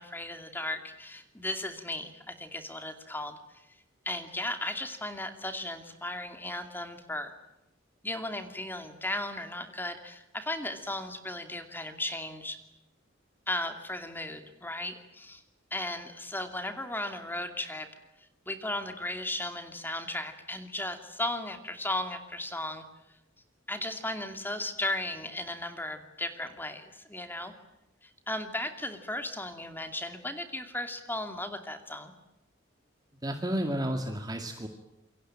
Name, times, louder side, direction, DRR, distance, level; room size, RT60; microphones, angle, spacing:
voice 1, 0.0-3.6 4.1-7.3 8.0-12.6 13.5-15.4 15.7-17.9 18.2-22.8 23.7-27.5 28.0-32.1, left 1 dB, 10° left, 7 dB, 2.5 m, -36 dB
voice 2, 33.2-34.7, equal, 20° right, 5 dB, 2.1 m, -31 dB
27.5 x 24.0 x 8.8 m, 0.90 s
head